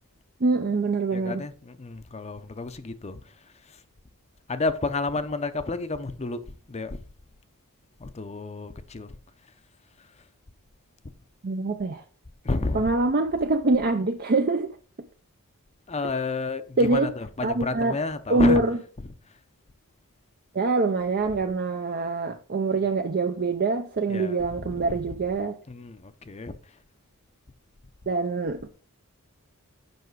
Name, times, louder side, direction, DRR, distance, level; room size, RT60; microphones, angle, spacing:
voice 1, 0.4-1.4 11.4-12.0 12.7-14.8 16.8-17.1 17.4-18.0 18.3-18.8 20.5-25.6 28.1-28.7, right 3 dB, 45° right, 0.6 m, -24 dB
voice 2, 1.1-3.2 4.5-7.0 8.0-9.1 12.4-12.9 15.9-18.6 24.1-24.9 25.7-26.5, left 3 dB, 30° left, 0.6 m, -31 dB
8.0 x 5.8 x 4.6 m
head